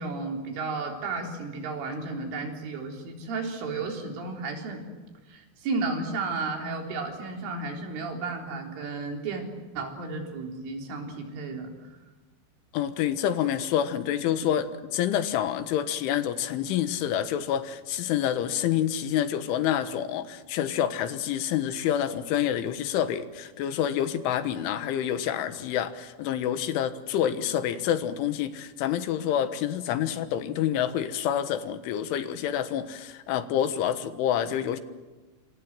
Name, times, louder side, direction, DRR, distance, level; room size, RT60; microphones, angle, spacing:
voice 1, 0.0-4.8 5.3-9.4 9.8-11.7, right 3 dB, 75° right, 2 dB, 6.3 m, -33 dB
voice 2, 12.7-34.8, left 10 dB, 80° left, 10 dB, 3.7 m, -27 dB
27.5 x 27.0 x 7.7 m, 1.2 s
omnidirectional pair, 5.6 m